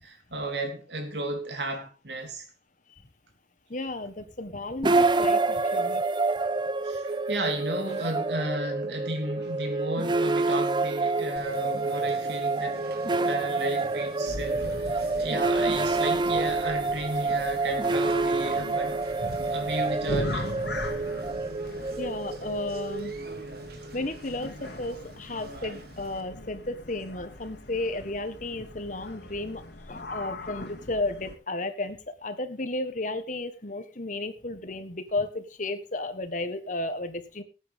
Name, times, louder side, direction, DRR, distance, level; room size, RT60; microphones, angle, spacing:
voice 1, 0.0-2.5 6.8-12.8 13.2-19.0 19.5-20.5, right 2 dB, 75° right, 3.2 m, -33 dB
voice 2, 3.7-6.0 22.0-23.1 23.9-37.4, left 2 dB, 45° left, 1.5 m, -33 dB
sound 1, 4.8-23.9, right 3 dB, 25° right, 0.7 m, -28 dB
Conversation, 11.4-26.2, right 1 dB, 60° right, 1.7 m, -45 dB
sound 2, 14.3-31.3, left 2 dB, 75° left, 2.6 m, -40 dB
18.5 x 9.2 x 3.7 m
head